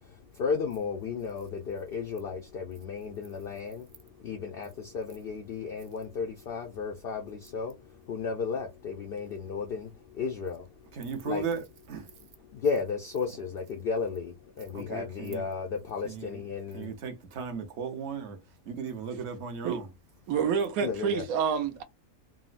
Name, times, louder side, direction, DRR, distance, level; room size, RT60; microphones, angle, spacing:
voice 1, 0.4-3.8 4.2-7.7 8.1-9.9 10.2-10.6 11.2-11.4 12.6-16.9 20.8-21.2, left 5 dB, 75° left, 0.5 m, -33 dB
voice 2, 10.9-11.6 11.9-12.1 14.7-15.4 16.0-16.4 16.7-18.4 18.7-19.9, right 6 dB, 60° right, 0.8 m, -36 dB
voice 3, 20.3-21.8, right 7 dB, 75° right, 1.1 m, -28 dB
3.7 x 2.0 x 2.4 m
omnidirectional pair, 1.6 m